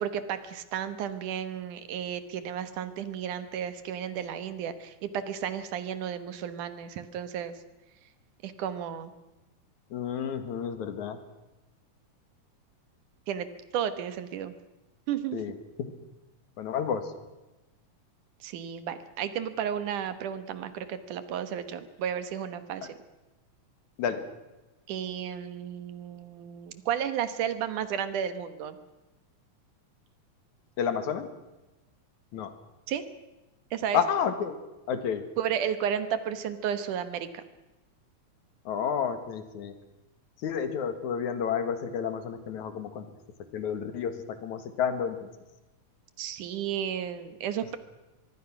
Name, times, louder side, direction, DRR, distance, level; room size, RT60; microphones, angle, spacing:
voice 1, 0.0-7.6 8.4-9.1 13.3-13.5 13.7-14.5 15.1-15.4 18.4-23.0 24.9-28.8 32.9-33.0 33.7-34.0 35.4-37.4 46.2-47.8, right 9 dB, 85° right, 11 dB, 2.9 m, -33 dB
voice 2, 9.9-11.2 15.3-15.9 16.6-17.1 24.0-24.3 30.8-31.3 32.3-32.5 33.9-34.6 34.9-35.3 38.7-39.7 40.4-43.1 43.5-45.3, left 7 dB, 70° left, 10 dB, 3.0 m, -30 dB
25.0 x 21.0 x 6.1 m, 1.1 s
omnidirectional pair, 3.5 m